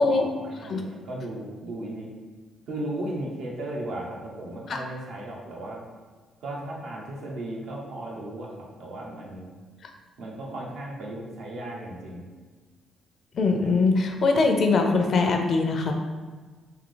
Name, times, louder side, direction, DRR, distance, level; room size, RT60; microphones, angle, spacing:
voice 1, 0.1-2.1 2.7-5.8 6.4-9.5 10.2-12.3, right 1 dB, 80° right, -3 dB, 0.9 m, -36 dB
voice 2, 13.3-15.9, left 3 dB, 55° left, 4 dB, 0.5 m, -22 dB
3.6 x 2.8 x 3.8 m, 1.4 s
cardioid pair, 90°, 0 cm